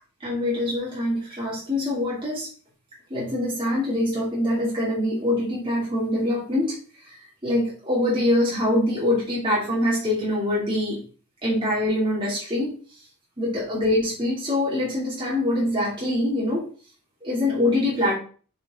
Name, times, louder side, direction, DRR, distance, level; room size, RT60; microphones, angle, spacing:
voice 1, 0.2-2.5 3.1-6.8 7.4-11.0 11.4-12.8 13.4-16.7 17.2-18.1, left 1 dB, 25° right, -6 dB, 2.4 m, -24 dB
6.9 x 5.3 x 3.6 m, 0.40 s
head